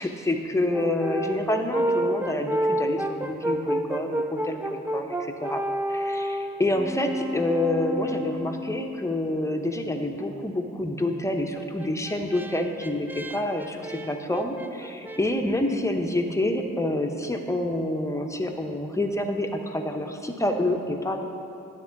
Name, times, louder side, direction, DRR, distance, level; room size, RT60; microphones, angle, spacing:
voice 1, 0.0-5.1 5.4-5.6 5.9-21.2, left 1 dB, 10° left, 3 dB, 0.8 m, -27 dB
Brass instrument, 0.7-9.1 11.6-15.2, right 1 dB, 5° right, 0.3 m, -30 dB
9.4 x 3.7 x 7.1 m, 2.7 s
supercardioid pair, 60°, 30 cm